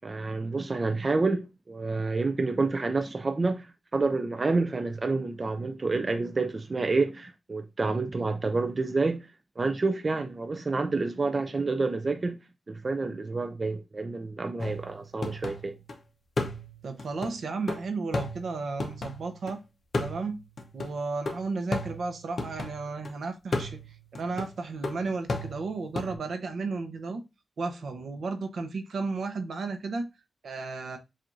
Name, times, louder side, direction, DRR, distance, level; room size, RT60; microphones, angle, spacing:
voice 1, 0.0-9.3 9.6-12.4 12.7-15.7, right 3 dB, 30° right, 0.3 m, -28 dB
sound 1, 14.6-15.9 16.4-19.5 19.9-23.1 23.5-26.2, left 2 dB, 50° left, 0.7 m, -35 dB
voice 2, 16.8-19.6 20.0-20.4 20.7-23.8 24.1-27.2 27.6-30.1 30.4-31.0, right 4 dB, 70° right, 0.7 m, -33 dB
7.4 x 2.5 x 2.6 m
wide cardioid pair, 170°, 0 cm